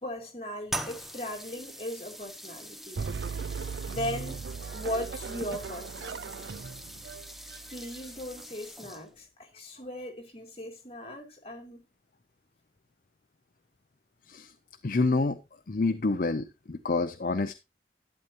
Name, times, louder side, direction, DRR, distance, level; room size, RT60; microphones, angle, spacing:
voice 1, 0.0-3.0 3.9-4.4 4.7-6.6 7.7-11.8, left 1 dB, 35° left, 3.0 m, -38 dB
sound 1, 0.7-9.3, right 1 dB, ahead, 0.9 m, -43 dB
sound 2, 3.0-8.4, right 5 dB, 75° right, 0.4 m, -38 dB
voice 2, 14.8-15.4 15.7-17.5, left 3 dB, 50° left, 0.6 m, -28 dB
12.0 x 8.9 x 2.9 m
head